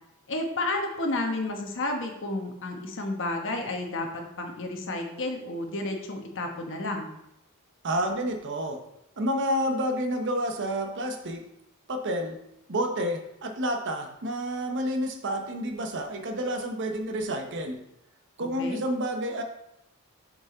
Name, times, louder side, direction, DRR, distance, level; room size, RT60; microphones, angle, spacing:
voice 1, 0.3-7.1 18.6-18.8, left 2 dB, 60° left, 3 dB, 1.2 m, -31 dB
voice 2, 7.8-8.8 9.2-11.4 11.9-12.4 12.7-17.8 18.4-19.4, equal, 55° right, 5 dB, 0.8 m, -29 dB
7.3 x 4.9 x 3.9 m, 0.82 s
head